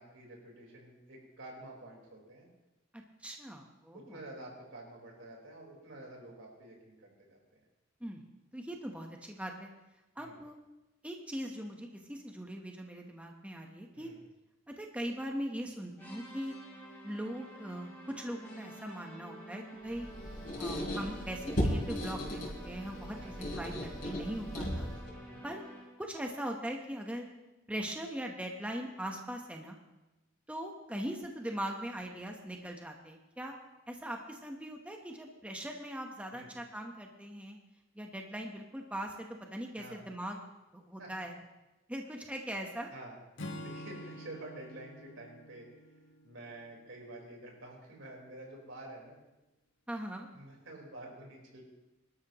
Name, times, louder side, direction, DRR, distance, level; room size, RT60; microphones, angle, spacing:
voice 1, 0.0-2.5 3.9-7.6 10.2-10.4 13.9-14.2 23.1-23.4 25.1-25.4 36.3-36.5 39.8-40.0 41.0-41.1 42.9-45.7 46.2-49.2 50.3-51.6, right 1 dB, 75° right, -1 dB, 4.3 m, -49 dB
voice 2, 3.2-4.2 8.0-8.2 8.5-9.7 10.2-10.6 11.0-14.1 14.8-16.5 17.0-20.1 20.6-24.9 25.4-25.6 26.0-27.3 27.7-29.8 30.5-33.5 33.9-37.6 38.0-40.4 40.7-41.3 41.9-42.9 49.9-50.3, equal, 5° right, 2 dB, 1.1 m, -40 dB
sound 1, 16.0-26.1, right 1 dB, 10° left, 4.2 m, -50 dB
Squeak, 19.9-25.1, equal, 45° left, 4.3 m, -36 dB
Acoustic guitar / Strum, 43.4-46.9, left 1 dB, 65° left, 1.5 m, -47 dB
25.0 x 12.5 x 3.0 m, 1.0 s
head